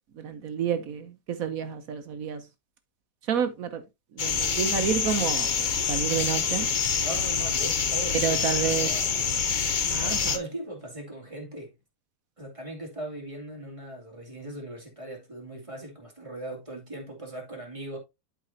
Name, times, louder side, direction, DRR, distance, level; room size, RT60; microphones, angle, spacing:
voice 1, 0.1-2.4 3.2-3.8 4.1-5.6 5.9-6.7 8.1-9.0 9.9-10.4, right 7 dB, 65° right, 1.2 m, -29 dB
sound 1, 4.2-10.4, left 6 dB, 50° left, 0.5 m, -26 dB
voice 2, 7.0-9.3 9.9-11.7 12.4-18.0, right 1 dB, 20° right, 2.2 m, -39 dB
11.5 x 4.8 x 2.6 m
omnidirectional pair, 1.8 m